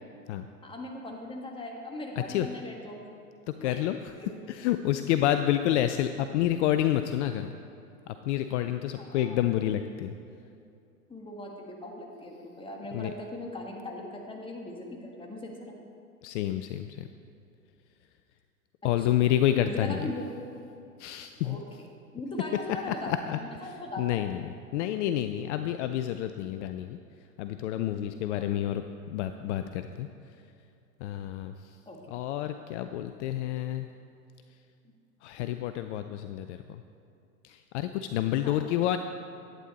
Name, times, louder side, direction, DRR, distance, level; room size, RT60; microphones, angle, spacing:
voice 1, 0.6-3.2 3.6-3.8 4.2-4.3 8.9-9.4 11.1-15.7 19.0-19.1 19.6-20.4 21.4-21.6 22.1-23.1 23.4-24.2 28.3-28.5 31.8-32.1 38.4-38.6, left 1 dB, 10° left, 0 dB, 1.5 m, -39 dB
voice 2, 2.2-2.5 3.5-4.1 4.5-7.5 8.1-10.1 12.9-13.1 16.2-17.1 18.8-20.1 21.0-21.6 22.9-23.4 24.0-27.0 27.4-28.8 29.1-30.1 31.0-31.8 32.1-33.9 35.2-36.8 37.4-39.0, left 12 dB, 50° left, 9 dB, 0.5 m, -29 dB
11.5 x 9.0 x 4.1 m, 2.6 s
hypercardioid pair, 100°, 45 cm